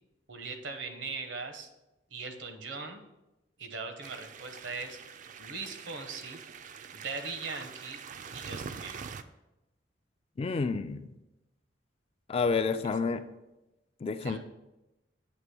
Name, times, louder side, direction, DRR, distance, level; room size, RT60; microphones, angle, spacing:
voice 1, 0.3-1.7 2.1-3.0 3.6-5.0 5.4-6.4 6.9-8.0 8.3-9.1 14.2-14.4, right 4 dB, 80° right, 6 dB, 0.9 m, -40 dB
sound 1, 4.0-9.2, right 6 dB, 45° right, 0.3 m, -44 dB
voice 2, 10.4-11.1 12.3-13.2 14.0-14.4, left 4 dB, 35° left, 11 dB, 0.3 m, -29 dB
8.1 x 2.9 x 6.1 m, 0.97 s
head